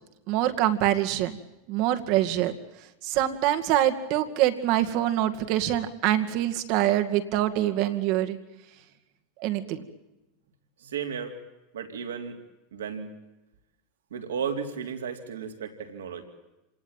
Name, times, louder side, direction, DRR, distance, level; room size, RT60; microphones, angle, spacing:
voice 1, 0.3-1.4 1.7-2.5 3.0-8.4 9.4-9.8, right 13 dB, 55° right, 7 dB, 2.2 m, -25 dB
voice 2, 10.8-11.4 11.7-12.4 12.7-13.1 14.1-16.2, right 7 dB, 80° right, 4 dB, 3.6 m, -34 dB
27.5 x 19.0 x 9.2 m, 0.98 s
hypercardioid pair, 90°, 0 cm